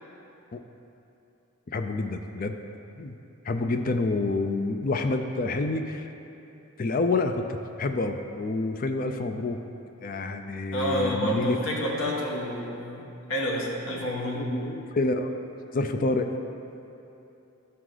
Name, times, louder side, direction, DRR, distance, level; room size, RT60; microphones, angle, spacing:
voice 1, 1.7-2.6 3.0-3.1 3.4-6.1 6.8-7.5 7.8-9.6 10.0-11.6 14.3-15.3 15.7-16.4, left 3 dB, 40° left, 6 dB, 0.4 m, -28 dB
voice 2, 10.7-14.5, equal, 65° left, -2 dB, 1.3 m, -29 dB
12.5 x 4.7 x 3.9 m, 2.9 s
head